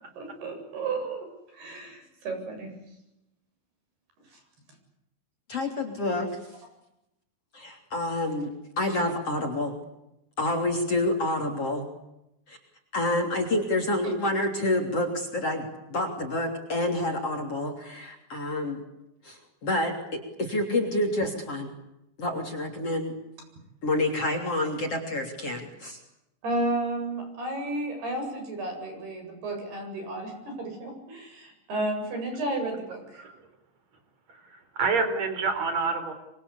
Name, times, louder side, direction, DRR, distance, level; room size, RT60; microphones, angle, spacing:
voice 1, 0.2-1.3 1.5-2.7 26.4-33.2, right 2 dB, 60° right, 5 dB, 9.9 m, -32 dB
voice 2, 5.5-6.4 7.5-8.5 8.8-9.8 10.4-11.9 12.5-12.6 12.9-18.8 19.2-21.7 22.2-23.1 23.8-26.0, left 1 dB, 35° left, 3 dB, 3.8 m, -28 dB
voice 3, 34.3-36.1, right 4 dB, 40° right, 9 dB, 5.2 m, -28 dB
25.5 x 25.5 x 8.5 m, 0.88 s
omnidirectional pair, 5.1 m